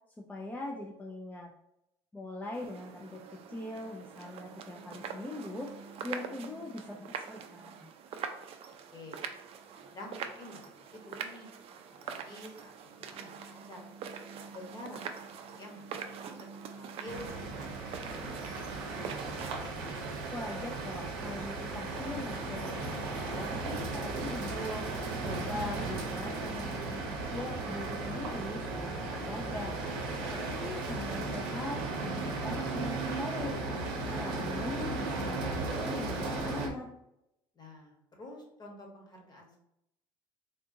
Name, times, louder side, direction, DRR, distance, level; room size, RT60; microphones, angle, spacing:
voice 1, 0.3-1.5 2.1-7.8 20.3-23.0 23.3-24.9 25.2-27.0 27.3-30.0 30.3-33.6 34.1-36.9, left 2 dB, 15° left, -2 dB, 0.5 m, -41 dB
sound 1, 2.5-19.6, right 7 dB, 55° right, 0.4 m, -44 dB
voice 2, 9.8-11.5 11.9-13.8 14.4-15.0 15.4-16.3 16.7-19.1 37.5-39.6, left 1 dB, 35° left, 0 dB, 1.2 m, -49 dB
sound 2, 17.1-36.7, right 3 dB, 85° right, 0.7 m, -36 dB
3.7 x 2.4 x 2.7 m, 0.83 s
supercardioid pair, 80°, 12 cm